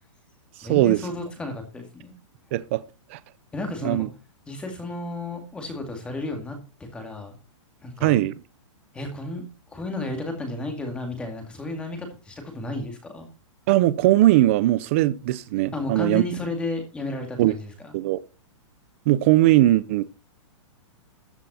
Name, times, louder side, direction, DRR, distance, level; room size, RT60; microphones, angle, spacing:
voice 1, 0.6-2.1 3.5-4.1 4.5-7.4 7.8-8.2 8.9-13.3 15.7-17.9, left 2 dB, 5° left, 2.0 m, -33 dB
voice 2, 2.5-2.8 3.1-3.2 3.8-4.1 8.0-8.4 13.7-16.2 17.4-17.5 17.9-18.2 19.1-20.0, right 15 dB, 25° right, 0.5 m, -19 dB
13.5 x 7.5 x 4.3 m
hypercardioid pair, 175°, 16 cm